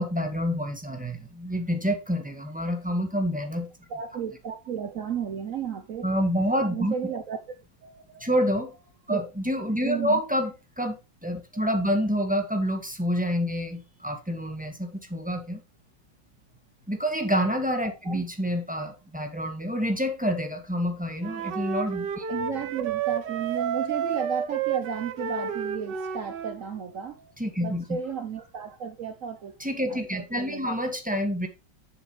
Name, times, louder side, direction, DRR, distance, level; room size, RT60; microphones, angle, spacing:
voice 1, 0.0-3.7 6.0-6.9 8.2-8.7 9.1-15.6 16.9-22.2 27.4-27.8 29.6-31.5, equal, 5° right, 1.9 m, -28 dB
voice 2, 3.9-6.1 6.7-7.4 7.8-8.3 9.1-9.2 9.8-10.2 11.5-11.6 18.0-18.2 22.3-27.3 27.6-29.5 29.9-30.8, right 7 dB, 55° right, 1.0 m, -34 dB
Wind instrument woodwind instrument, 21.2-26.6, right 7 dB, 70° right, 1.6 m, -30 dB
10.0 x 7.5 x 3.2 m
omnidirectional pair, 2.0 m